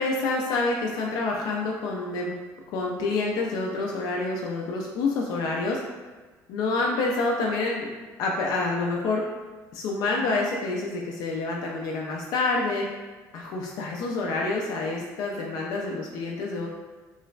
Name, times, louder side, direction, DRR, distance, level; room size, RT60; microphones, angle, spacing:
voice 1, 0.0-2.3 2.7-5.8 6.5-7.9 8.2-9.2 9.7-12.9 13.3-16.7, left 3 dB, 70° left, -1 dB, 0.3 m, -27 dB
3.0 x 2.0 x 2.4 m, 1.3 s
cardioid pair, 135°, 7 cm